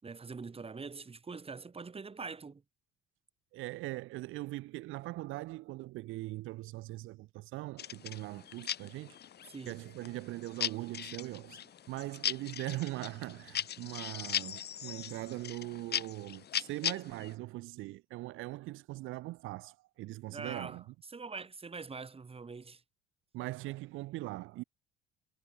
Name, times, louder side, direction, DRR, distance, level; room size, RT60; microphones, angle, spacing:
voice 1, 0.0-2.6 9.5-9.8 20.3-20.8 21.1-22.8, right 4 dB, 30° right, 5.6 m, -43 dB
voice 2, 3.5-9.2 9.7-20.8 23.3-24.6, right 19 dB, 75° right, 1.2 m, -41 dB
sound 1, 7.8-17.3, left 10 dB, 55° left, 2.8 m, -39 dB
supercardioid pair, 85°, 21 cm